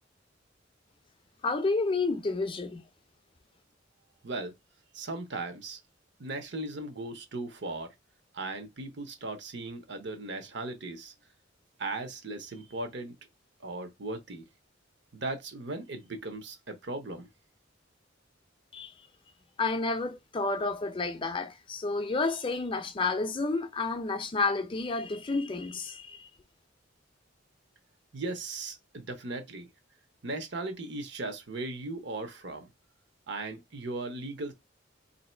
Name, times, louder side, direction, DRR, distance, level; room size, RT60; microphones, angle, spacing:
voice 1, 1.4-2.8 18.7-18.9 19.6-26.3, left 3 dB, 25° left, 0.5 m, -30 dB
voice 2, 4.2-4.5 4.9-5.8 6.2-7.9 8.3-11.1 11.8-13.1 13.6-14.4 15.1-17.3 28.1-29.7 30.2-32.7 33.3-34.5, right 2 dB, 60° right, 0.8 m, -37 dB
3.0 x 2.7 x 4.3 m
head